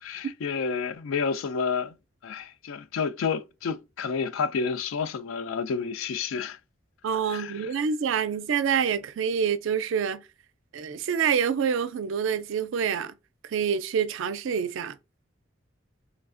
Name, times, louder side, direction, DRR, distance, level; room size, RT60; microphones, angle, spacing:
voice 1, 0.0-1.9 2.2-6.6 7.3-7.5, left 5 dB, 80° left, 0.3 m, -30 dB
voice 2, 7.0-10.2 10.7-13.1 13.5-15.0, right 7 dB, 75° right, 0.4 m, -27 dB
3.2 x 2.3 x 2.4 m
head